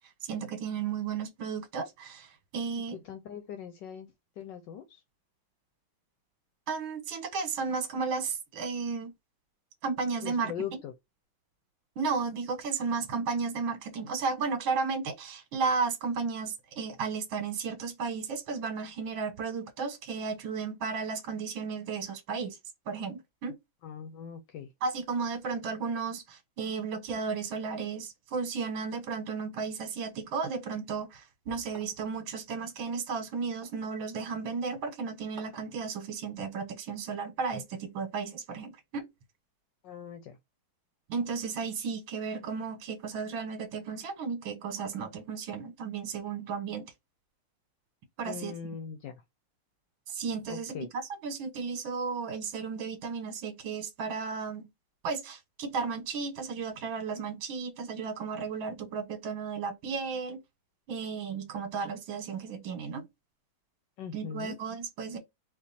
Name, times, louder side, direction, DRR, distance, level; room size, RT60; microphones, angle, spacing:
voice 1, 0.3-3.0 6.7-9.1 9.8-10.5 12.0-22.6 22.9-23.6 24.8-39.1 41.1-46.9 48.2-48.5 50.1-50.9 51.2-54.7 55.0-60.4 60.9-63.1 64.1-65.2, right 5 dB, 75° right, 1.9 m, -34 dB
voice 2, 3.0-4.1 4.4-5.0 10.2-10.9 23.8-24.7 39.8-40.4 48.2-49.2 50.5-50.9 64.0-64.6, left 8 dB, 70° left, 1.2 m, -40 dB
sound 1, 31.7-32.2 33.6-33.9 35.4-35.8, right 3 dB, 35° right, 1.0 m, -50 dB
4.4 x 2.9 x 4.1 m
omnidirectional pair, 2.2 m